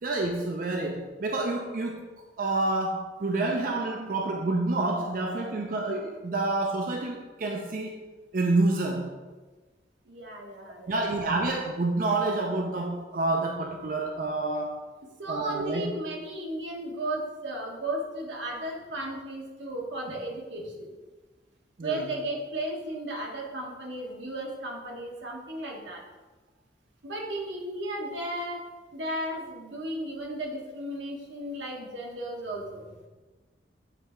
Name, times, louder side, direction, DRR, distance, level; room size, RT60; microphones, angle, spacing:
voice 1, 0.0-2.1 2.4-8.0 8.3-9.1 10.9-14.9 15.3-15.9 21.8-22.0, right 2 dB, 50° right, 2 dB, 0.4 m, -28 dB
voice 2, 10.0-11.0 15.2-20.9 21.8-26.0 27.0-28.6 28.9-32.8, right 1 dB, 80° right, 0 dB, 1.2 m, -35 dB
8.0 x 3.4 x 4.3 m, 1.3 s
head